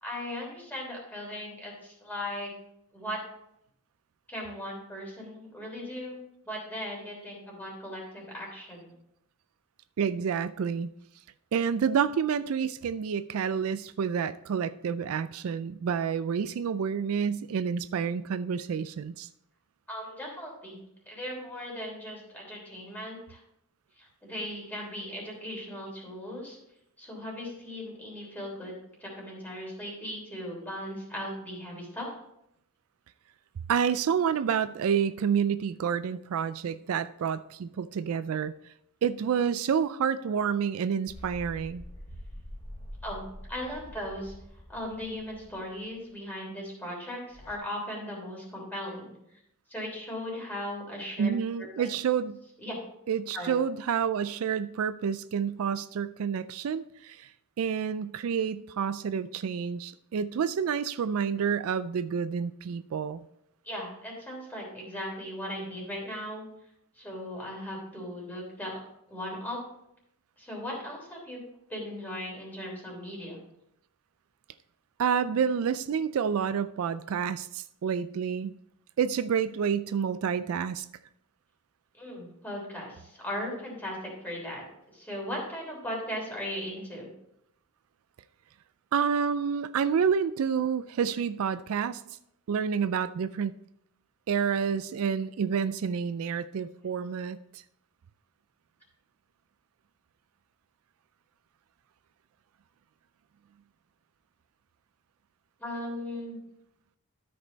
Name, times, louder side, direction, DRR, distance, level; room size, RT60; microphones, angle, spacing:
voice 1, 0.0-2.5 2.9-3.2 4.3-6.2 6.4-8.9 19.9-20.8 21.1-23.4 24.0-26.6 27.0-28.7 29.0-32.1 43.0-43.2 43.5-44.3 44.7-49.1 49.7-51.3 51.8-51.9 52.6-52.8 53.3-53.5 63.6-66.4 67.0-68.8 69.1-69.6 70.4-71.4 71.7-73.4 82.0-87.1 105.6-106.4, left 1 dB, 10° left, -2 dB, 3.3 m, -38 dB
voice 2, 10.0-10.9 11.5-19.3 33.7-38.5 39.0-41.8 51.2-52.4 53.1-57.3 57.6-63.3 75.0-78.5 79.0-80.9 88.9-92.0 92.5-93.5 94.3-97.6, right 7 dB, 65° right, 14 dB, 0.3 m, -29 dB
sound 1, 41.1-46.0 47.3-47.6, equal, 25° left, 1.0 m, -45 dB
13.0 x 5.3 x 4.0 m, 0.78 s
head